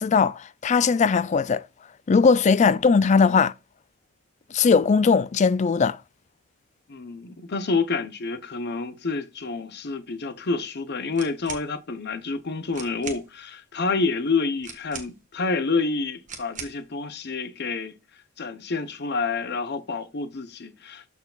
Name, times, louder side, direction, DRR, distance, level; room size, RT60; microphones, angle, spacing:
voice 1, 0.0-1.6 2.1-3.5 4.5-6.0, left 5 dB, 30° left, 0.3 m, -19 dB
voice 2, 6.9-17.9 18.4-21.1, left 4 dB, 50° left, 0.8 m, -28 dB
sound 1, 11.1-11.7 12.4-12.5 12.7-13.3 14.6-15.4 16.3-16.8, right 5 dB, 35° right, 1.5 m, -39 dB
13.5 x 4.7 x 2.4 m
head